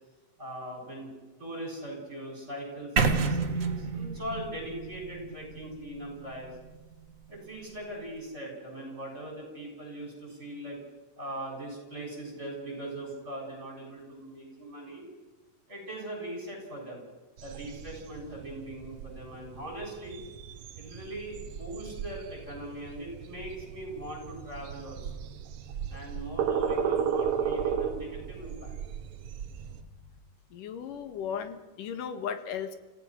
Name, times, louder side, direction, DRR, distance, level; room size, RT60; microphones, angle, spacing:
voice 1, 0.4-6.6 7.3-10.8 11.2-15.0 15.7-17.0 17.4-20.2 20.8-25.2 25.9-28.7, right 1 dB, 20° right, 0 dB, 7.8 m, -40 dB
sound 1, 3.0-6.9, right 5 dB, 45° right, 1.1 m, -30 dB
sound 2, 17.4-29.8, right 7 dB, 90° right, 1.1 m, -35 dB
voice 2, 30.5-32.8, left 7 dB, 75° left, 9 dB, 3.1 m, -36 dB
27.0 x 16.5 x 6.3 m, 1.2 s
omnidirectional pair, 3.8 m